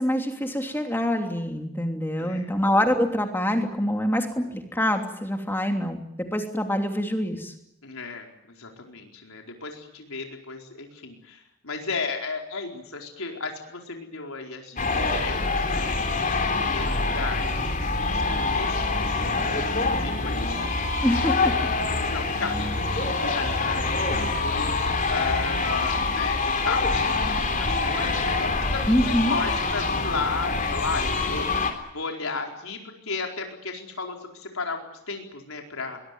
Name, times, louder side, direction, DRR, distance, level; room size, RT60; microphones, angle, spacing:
voice 1, 0.0-6.0 6.3-7.5 21.0-21.6 28.9-29.4, equal, 10° left, 4 dB, 3.0 m, -25 dB
voice 2, 2.2-2.6 7.8-8.3 8.6-16.2 16.6-17.5 18.1-19.5 19.8-20.9 21.9-31.6 31.9-36.0, left 4 dB, 85° left, 2 dB, 4.6 m, -34 dB
sound 1, 14.8-31.7, left 3 dB, 40° left, 3.6 m, -25 dB
22.5 x 22.0 x 9.4 m, 0.80 s
head